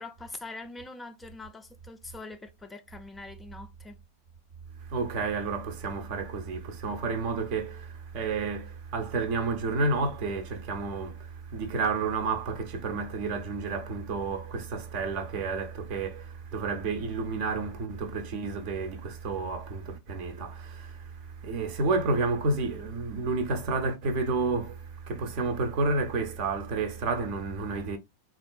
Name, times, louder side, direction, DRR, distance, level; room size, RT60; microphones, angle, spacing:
voice 1, 0.0-4.0, left 3 dB, 10° left, 0.3 m, -43 dB
voice 2, 4.9-28.0, right 3 dB, 45° right, 0.6 m, -30 dB
3.5 x 2.4 x 2.3 m
figure-of-eight pair, 90°, 0 cm